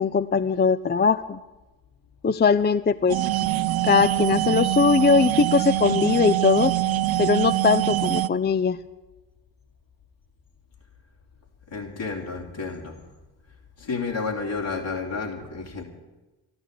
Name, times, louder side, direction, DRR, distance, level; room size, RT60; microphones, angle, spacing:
voice 1, 0.0-1.4 2.2-3.2 3.8-6.7 7.2-8.8, left 5 dB, 20° left, 13 dB, 0.5 m, -20 dB
sound 1, 3.1-8.3, right 14 dB, 50° right, 0.6 m, -24 dB
voice 2, 11.7-13.0 13.8-15.8, left 4 dB, 65° left, -1 dB, 3.5 m, -31 dB
13.0 x 11.5 x 8.5 m, 1.1 s
hypercardioid pair, 40°, 49 cm